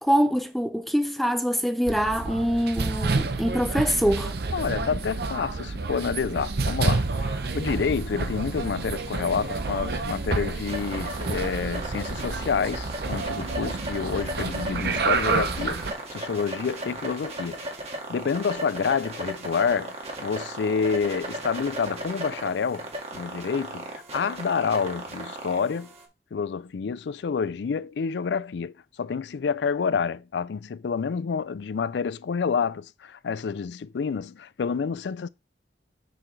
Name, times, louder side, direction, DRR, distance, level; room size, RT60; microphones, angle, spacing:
voice 1, 0.0-4.3, equal, ahead, 0.6 m, -24 dB
sound 1, 1.9-15.9, right 3 dB, 60° right, 0.8 m, -29 dB
voice 2, 4.5-17.6 18.1-25.9 26.3-35.3, left 6 dB, 80° left, 0.4 m, -28 dB
sound 2, 6.8-26.0, right 1 dB, 40° right, 1.8 m, -37 dB
6.8 x 6.1 x 3.2 m
head